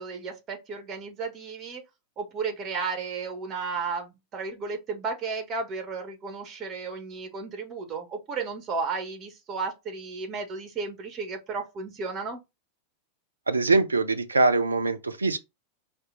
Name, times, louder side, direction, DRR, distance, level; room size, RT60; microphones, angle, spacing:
voice 1, 0.0-1.8 2.2-12.4, right 4 dB, 30° right, 1.1 m, -33 dB
voice 2, 13.5-15.4, right 3 dB, 80° right, 0.6 m, -23 dB
4.7 x 2.6 x 3.7 m
figure-of-eight pair, 90°, 0 cm